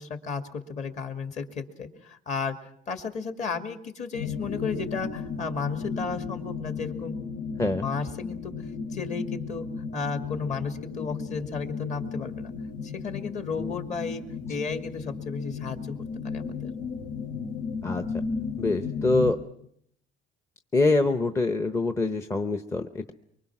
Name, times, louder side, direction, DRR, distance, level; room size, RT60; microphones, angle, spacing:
voice 1, 0.0-2.6 2.9-7.2 7.8-8.5 8.9-9.7 9.9-12.5 12.8-14.2 14.5-16.0 16.2-16.7, left 5 dB, 40° left, 6 dB, 2.2 m, -33 dB
sound 1, 4.1-19.3, left 5 dB, 85° left, 3.3 m, -35 dB
voice 2, 18.6-19.4 20.7-23.1, left 2 dB, 15° left, 8 dB, 0.8 m, -25 dB
24.5 x 24.0 x 6.0 m, 0.70 s
cardioid pair, 155°, 19 cm